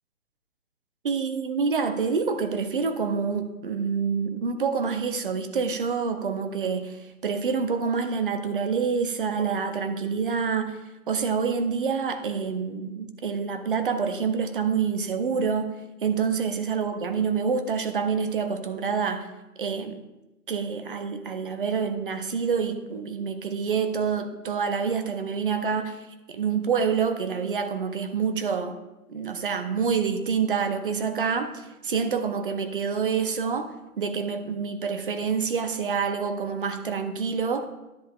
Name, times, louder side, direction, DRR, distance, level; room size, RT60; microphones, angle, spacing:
voice 1, 1.0-19.3 19.6-20.0 20.5-28.8 29.1-33.7 34.0-37.7, right 6 dB, 35° right, 8 dB, 0.7 m, -27 dB
11.0 x 10.0 x 2.4 m, 0.98 s
hypercardioid pair, 160°, 45 cm